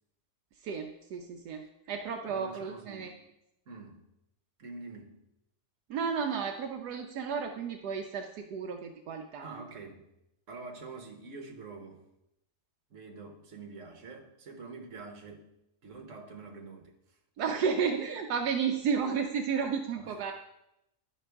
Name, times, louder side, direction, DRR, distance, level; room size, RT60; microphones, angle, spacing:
voice 1, 0.6-3.1 5.9-9.6 17.4-20.3, right 6 dB, 80° right, 3 dB, 1.2 m, -32 dB
voice 2, 2.2-3.1 3.7-4.0 4.6-5.2 9.4-10.0 10.5-12.0 12.9-15.4 15.8-17.0 19.9-20.1, right 3 dB, 55° right, 2 dB, 1.4 m, -46 dB
11.0 x 5.4 x 3.4 m, 0.85 s
omnidirectional pair, 1.7 m